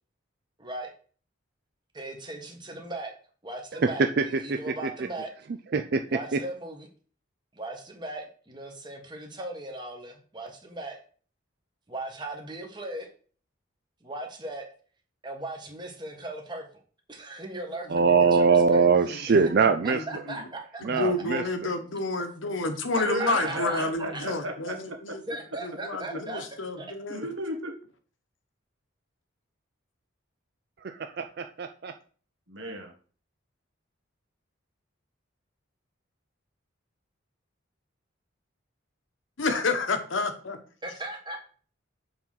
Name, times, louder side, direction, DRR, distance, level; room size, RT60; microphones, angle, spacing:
voice 1, 0.6-0.9 1.9-3.1 3.4-5.3 6.1-6.9 7.5-11.0 11.9-13.1 14.0-14.7 15.2-16.6 17.1-18.9 19.8-20.8 23.0-23.8 24.1-24.3 25.3-26.4 26.8-26.9 40.8-41.4, right 2 dB, 20° right, 3 dB, 1.3 m, -38 dB
voice 2, 4.2-4.9 5.7-6.0 6.3-6.4 17.9-20.0 20.8-21.7 30.8-31.9, right 5 dB, 50° right, 7 dB, 0.4 m, -23 dB
voice 3, 17.9-18.3 19.0-19.5 19.9-20.0 20.9-25.2 25.6-27.2 39.4-40.6, left 3 dB, 75° left, 7 dB, 1.1 m, -30 dB
voice 4, 23.0-25.0 27.1-27.7 32.5-32.9, right 1 dB, 70° right, 2 dB, 1.7 m, -33 dB
7.1 x 3.7 x 5.7 m, 0.43 s
head